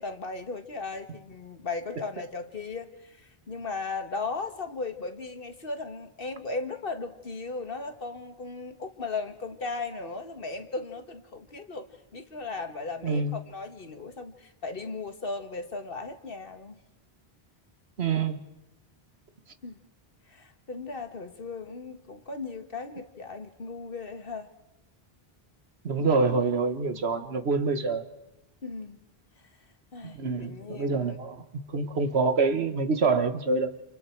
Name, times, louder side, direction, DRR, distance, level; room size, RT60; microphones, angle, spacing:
voice 1, 0.0-11.9 12.1-16.8 19.6-19.8 20.3-24.5 28.6-29.0 29.9-31.2, left 3 dB, 60° left, 1.9 m, -37 dB
voice 2, 13.0-13.4 18.0-18.4 25.8-28.0 30.0-31.4 31.7-33.8, right 4 dB, 85° right, 1.6 m, -26 dB
29.5 x 28.5 x 4.6 m
omnidirectional pair, 1.0 m